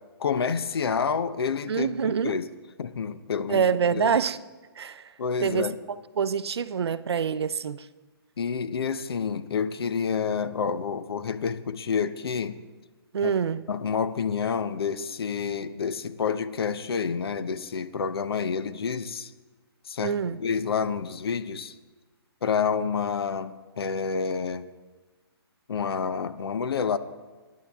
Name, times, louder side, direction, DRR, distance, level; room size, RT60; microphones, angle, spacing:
voice 1, 0.2-2.5 2.8-4.2 5.2-5.7 8.4-12.6 13.2-13.3 13.7-19.3 19.9-21.7 22.4-24.7 25.7-27.0, left 6 dB, 70° left, 0.9 m, -29 dB
voice 2, 1.7-2.4 3.5-4.4 4.8-5.1 5.4-7.9 13.1-13.6 20.0-20.4, right 7 dB, 80° right, 0.6 m, -26 dB
19.0 x 10.5 x 3.6 m
hypercardioid pair, 165°, 13 cm